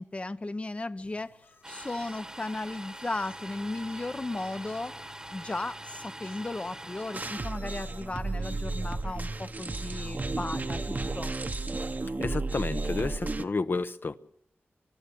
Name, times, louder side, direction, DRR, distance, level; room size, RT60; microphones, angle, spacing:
voice 1, 0.0-1.3 1.7-4.9 5.3-11.3, left 2 dB, 30° left, 12 dB, 0.7 m, -36 dB
sound 1, 1.0-10.9, left 3 dB, 80° left, 6.4 m, -55 dB
Domestic sounds home sounds, 1.6-7.4, right 1 dB, 15° right, 1.2 m, -44 dB
sound 2, 7.1-13.5, right 3 dB, 45° right, 1.0 m, -33 dB
voice 2, 12.2-14.2, left 3 dB, 55° left, 11 dB, 0.9 m, -31 dB
25.0 x 12.5 x 8.5 m, 0.78 s
wide cardioid pair, 65°, 4 cm